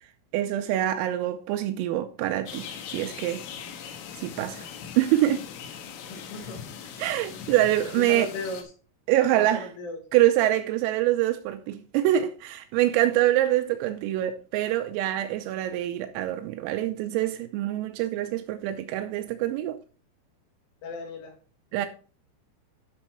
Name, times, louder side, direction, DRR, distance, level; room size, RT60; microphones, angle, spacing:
voice 1, 0.3-3.4 4.1-4.7 5.0-5.4 7.0-8.3 9.1-9.7 10.1-19.8 21.7-21.9, right 13 dB, 85° right, 3.4 m, -25 dB
sound 1, 2.5-8.6, left 7 dB, 85° left, 4.1 m, -40 dB
voice 2, 6.1-6.6 8.0-8.7 9.4-10.0 20.8-21.4, left 3 dB, 70° left, 4.5 m, -36 dB
12.0 x 6.3 x 4.3 m
omnidirectional pair, 6.0 m